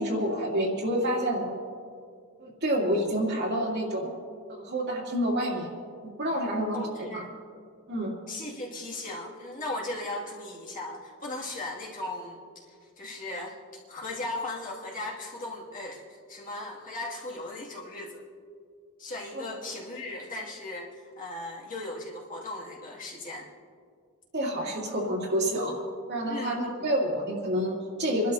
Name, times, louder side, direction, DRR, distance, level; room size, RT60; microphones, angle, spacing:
voice 1, 0.0-1.6 2.4-4.1 4.5-5.7 6.2-7.3 7.9-8.1 19.3-19.6 24.3-25.8 26.1-28.3, equal, 50° right, -3 dB, 2.6 m, -28 dB
voice 2, 6.7-7.3 8.3-12.4 12.7-13.6 13.9-16.0 16.3-18.2 19.0-23.5 26.3-26.9, left 2 dB, 40° left, -4 dB, 2.3 m, -37 dB
27.5 x 12.0 x 2.8 m, 2.1 s
head